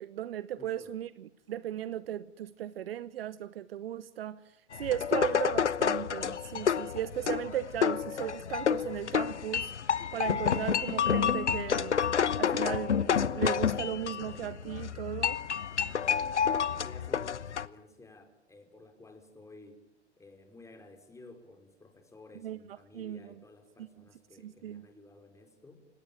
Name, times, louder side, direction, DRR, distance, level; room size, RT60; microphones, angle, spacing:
voice 1, 0.0-4.4 4.8-9.7 10.1-12.0 12.4-15.4 22.4-22.6 22.9-23.3 24.4-24.9, right 11 dB, 55° right, 1.0 m, -36 dB
voice 2, 0.6-1.0 16.0-16.3 16.8-19.8 20.2-25.8, left 2 dB, 10° left, 4.8 m, -54 dB
sound 1, 4.7-17.7, left 7 dB, 75° left, 1.1 m, -29 dB
30.0 x 17.5 x 9.1 m
figure-of-eight pair, 100°, 35 cm